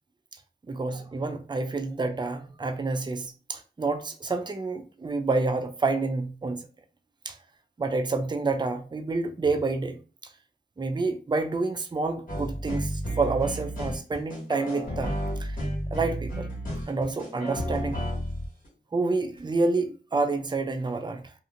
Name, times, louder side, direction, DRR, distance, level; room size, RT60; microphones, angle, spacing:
voice 1, 0.7-6.7 7.3-7.4 7.8-10.0 10.8-15.6 15.9-16.5 16.9-18.1 18.9-21.3, right 3 dB, 25° right, 0.4 m, -28 dB
sound 1, 12.3-18.7 19.4-19.5, equal, 55° left, 1.5 m, -32 dB
2.6 x 2.5 x 2.5 m
wide cardioid pair, 50°, 17 cm